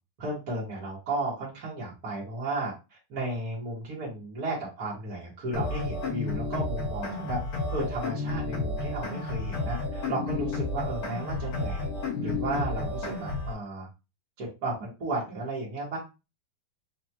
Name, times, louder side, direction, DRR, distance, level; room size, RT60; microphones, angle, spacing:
voice 1, 0.2-7.4 7.7-11.9 12.2-13.9 14.4-16.0, right 2 dB, 65° right, -5 dB, 0.9 m, -34 dB
sound 1, 5.5-13.5, left 3 dB, 70° left, 2.9 m, -31 dB
6.0 x 2.3 x 2.8 m, 0.27 s
omnidirectional pair, 4.1 m